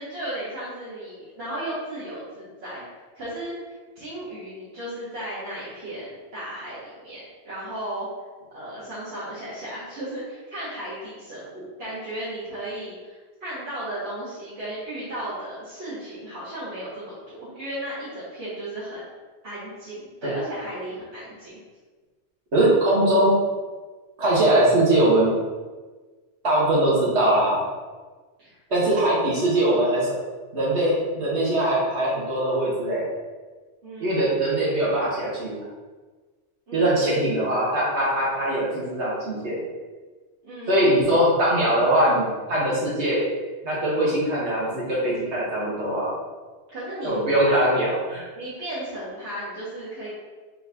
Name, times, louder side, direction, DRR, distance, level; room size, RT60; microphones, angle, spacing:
voice 1, 0.0-2.8 3.1-8.1 8.5-19.1 19.4-21.6 28.4-28.6 33.8-34.3 36.7-37.8 40.4-41.4 46.7-47.2 47.4-47.7 48.3-50.1, right 1 dB, 65° right, -12 dB, 1.6 m, -35 dB
voice 2, 22.5-23.3 24.2-25.4 26.4-27.6 28.7-30.1 30.5-33.0 34.0-35.6 36.7-39.6 40.7-43.2 43.6-46.1 47.0-48.3, right 1 dB, 80° right, -6 dB, 1.7 m, -21 dB
4.2 x 4.1 x 2.8 m, 1.4 s
omnidirectional pair, 1.1 m